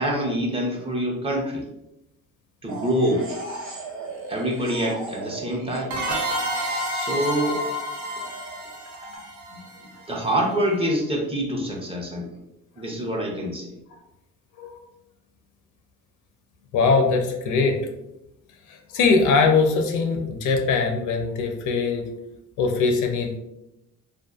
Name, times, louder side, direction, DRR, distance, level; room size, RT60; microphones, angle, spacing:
voice 1, 0.0-1.6 2.6-3.2 4.3-6.0 6.9-7.6 10.1-12.3 12.8-13.7, right 1 dB, 20° right, -1 dB, 0.6 m, -25 dB
sound 1, 2.7-6.0 6.3-9.2, right 3 dB, 45° right, 0.8 m, -37 dB
sound 2, 5.9-10.4, equal, 75° right, 0.6 m, -30 dB
voice 2, 16.7-17.8 18.7-22.1 22.6-23.4, left 4 dB, 80° left, 4 dB, 0.5 m, -21 dB
2.6 x 2.4 x 2.3 m, 0.87 s
cardioid pair, 90°, 30 cm